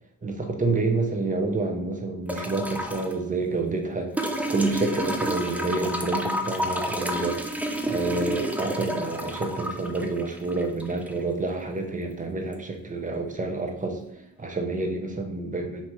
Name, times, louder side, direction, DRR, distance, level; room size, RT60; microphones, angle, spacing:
voice 1, 0.2-4.1 4.5-7.4 7.9-14.0 14.4-15.9, right 3 dB, 20° right, 3 dB, 0.7 m, -28 dB
sound 1, 2.3-3.1 4.2-11.2 12.5-12.6, equal, 5° right, 0.4 m, -30 dB
3.2 x 2.9 x 4.5 m, 0.83 s
cardioid pair, 110°, 35 cm